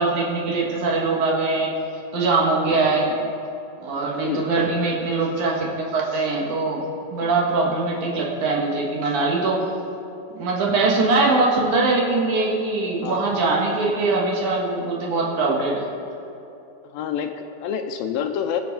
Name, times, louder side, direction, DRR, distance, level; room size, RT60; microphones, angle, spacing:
voice 1, 0.0-1.7 2.1-3.2 3.8-6.9 7.1-9.7 10.3-15.9, right 3 dB, 60° right, -2 dB, 2.6 m, -22 dB
voice 2, 2.9-3.2 4.2-4.4 7.2-7.3 13.0-13.4 16.9-18.6, left 8 dB, 80° left, 6 dB, 2.2 m, -28 dB
21.5 x 7.5 x 4.0 m, 2.8 s
omnidirectional pair, 4.2 m